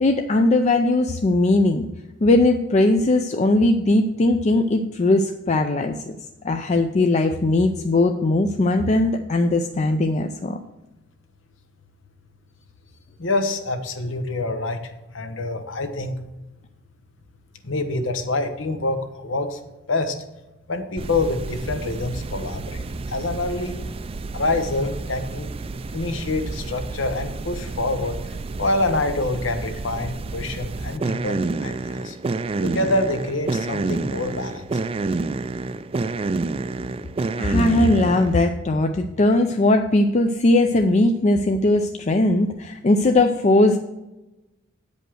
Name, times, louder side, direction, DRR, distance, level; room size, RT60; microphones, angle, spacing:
voice 1, 0.0-1.9 2.2-6.2 6.4-10.6 37.4-43.8, left 2 dB, 35° left, 5 dB, 0.5 m, -19 dB
voice 2, 13.2-14.8 15.1-16.2 17.6-19.6 19.9-20.2 20.7-22.8 23.1-23.8 24.3-25.5 25.9-28.2 28.6-32.2 32.6-34.6, left 2 dB, 80° left, 7 dB, 1.0 m, -26 dB
sound 1, 21.0-38.4, right 3 dB, 30° right, 0.4 m, -29 dB
8.9 x 5.3 x 6.2 m, 1.0 s
head